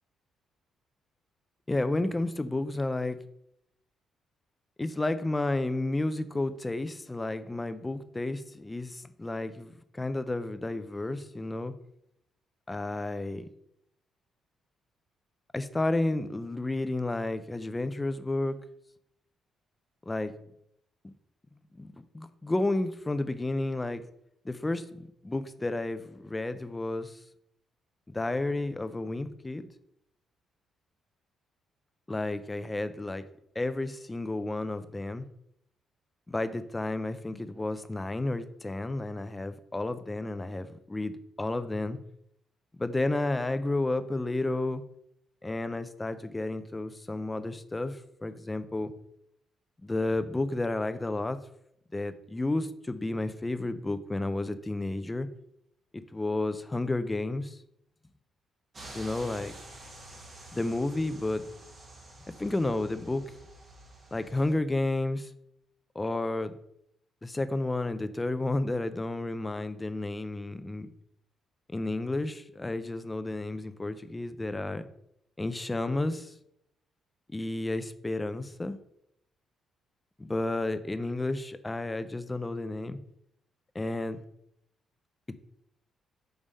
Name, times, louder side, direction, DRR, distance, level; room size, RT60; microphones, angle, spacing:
voice 1, 1.7-3.2 4.8-11.7 12.7-13.5 15.5-18.6 20.1-20.3 21.7-24.0 24.4-27.2 28.1-29.7 32.1-33.2 33.6-35.2 36.3-42.0 42.8-44.8 45.4-48.9 49.8-51.4 51.9-55.3 56.1-57.6 58.9-59.5 60.5-61.5 62.4-63.2 64.1-65.3 65.9-66.6 67.2-70.9 71.7-74.9 75.4-76.3 77.3-78.8 80.2-83.0 83.7-84.2 85.3-85.4, left 2 dB, 15° left, 11 dB, 0.5 m, -31 dB
sound 1, 58.7-64.5, right 2 dB, 40° right, 1.6 m, -48 dB
5.4 x 3.4 x 5.3 m, 0.75 s
cardioid pair, 90°, 0 cm